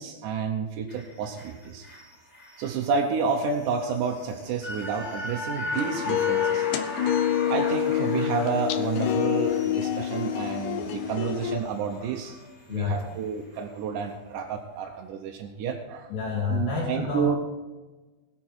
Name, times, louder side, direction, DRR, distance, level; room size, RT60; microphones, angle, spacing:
voice 1, 0.0-1.9 2.6-6.7 7.5-16.1 16.5-17.4, right 6 dB, 70° right, 2 dB, 2.1 m, -30 dB
sound 1, 0.9-13.2 13.6-13.7, left 2 dB, 20° left, 4.3 m, -39 dB
sound 2, 5.7-11.6, left 11 dB, 85° left, 1.7 m, -27 dB
voice 2, 12.7-13.1 16.1-17.4, left 5 dB, 60° left, -3 dB, 4.5 m, -29 dB
20.5 x 7.5 x 4.6 m, 1.2 s
omnidirectional pair, 4.5 m